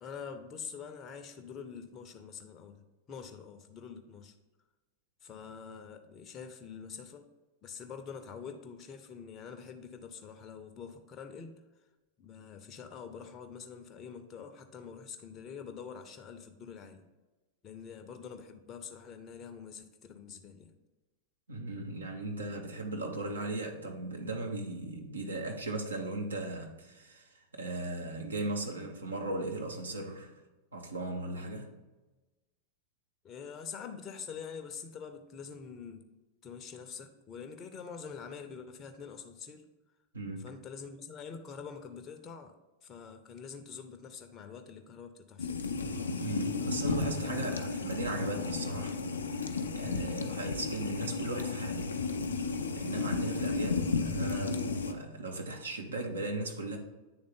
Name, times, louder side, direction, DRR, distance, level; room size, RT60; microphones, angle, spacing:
voice 1, 0.0-4.3 5.2-7.3 7.6-11.6 12.2-17.1 17.6-20.8 33.2-36.1 36.4-39.7 40.4-42.5 42.8-45.6, left 6 dB, 30° left, 0.6 m, -45 dB
voice 2, 21.5-30.3 30.7-31.7 40.1-40.5 46.2-49.0 49.4-52.0 52.8-56.8, right 2 dB, 75° right, 0.9 m, -37 dB
sound 1, 45.4-54.9, left 4 dB, 75° left, 0.5 m, -33 dB
8.7 x 3.6 x 3.7 m
figure-of-eight pair, 90°, 0 cm